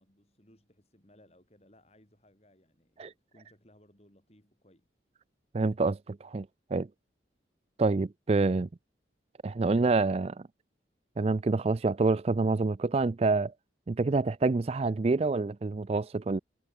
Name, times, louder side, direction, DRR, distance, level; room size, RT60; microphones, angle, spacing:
voice 1, 0.0-4.9, left 1 dB, 35° left, 7.6 m, -62 dB
voice 2, 5.5-6.5 6.7-6.9 7.8-8.7 9.4-10.4 11.2-13.5 13.9-16.4, right 3 dB, 35° right, 0.4 m, -27 dB
head